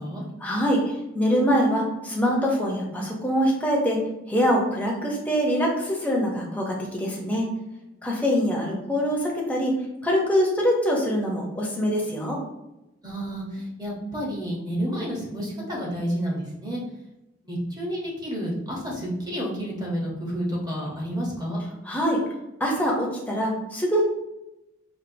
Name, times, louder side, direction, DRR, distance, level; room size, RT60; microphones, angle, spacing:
voice 1, 0.4-7.5 8.0-9.8 10.0-12.4 21.9-22.2 22.6-24.0, equal, 10° left, -2 dB, 0.7 m, -24 dB
voice 2, 13.0-16.8 17.4-21.6, equal, 20° right, -3 dB, 0.9 m, -30 dB
4.3 x 2.5 x 2.6 m, 0.92 s
head